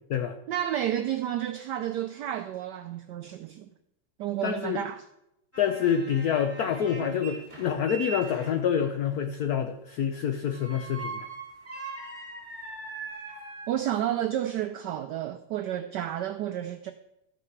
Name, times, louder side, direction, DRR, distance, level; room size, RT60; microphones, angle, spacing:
voice 1, 0.5-3.7 4.2-5.0 13.7-16.9, right 11 dB, 85° right, 0.9 m, -31 dB
voice 2, 4.4-4.8 5.6-11.3, left 8 dB, 80° left, 0.8 m, -27 dB
sound 1, 5.5-9.0 10.4-14.2, right 4 dB, 5° right, 2.1 m, -41 dB
13.0 x 6.1 x 4.6 m
omnidirectional pair, 2.4 m